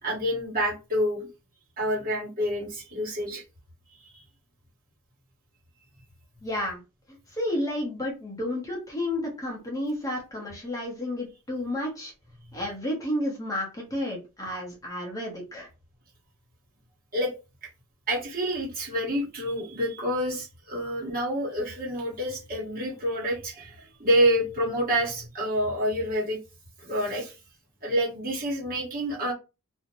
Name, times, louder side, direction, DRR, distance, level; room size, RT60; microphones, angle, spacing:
voice 1, 0.0-1.2 1.8-3.4 3.9-4.2 17.1-17.3 18.1-26.4 26.8-27.3 27.8-29.3, equal, 45° right, -4 dB, 1.3 m, -28 dB
voice 2, 6.4-6.8 7.3-12.1 12.5-15.7, left 1 dB, 15° left, -2 dB, 0.7 m, -31 dB
2.5 x 2.1 x 2.9 m, 0.29 s
head